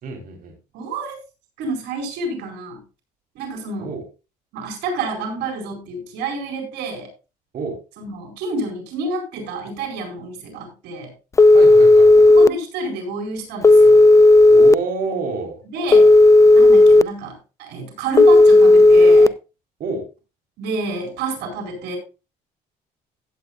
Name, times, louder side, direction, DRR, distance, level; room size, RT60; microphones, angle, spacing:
voice 1, 0.0-0.5 3.8-4.0 7.5-7.8 11.5-12.3 14.5-15.6 19.8-20.0, right 4 dB, 55° right, 2 dB, 3.8 m, -28 dB
voice 2, 0.7-1.2 1.6-2.8 3.3-3.9 4.5-7.1 8.0-11.1 12.2-14.1 15.7-16.1 16.5-19.3 20.6-22.0, right 2 dB, 85° right, 4 dB, 4.7 m, -29 dB
Telephone, 11.4-12.5 13.6-14.7 15.9-17.0 18.2-19.3, left 2 dB, 20° left, 0.4 m, -10 dB
16.5 x 8.6 x 2.3 m, 0.30 s
cardioid pair, 110°, 17 cm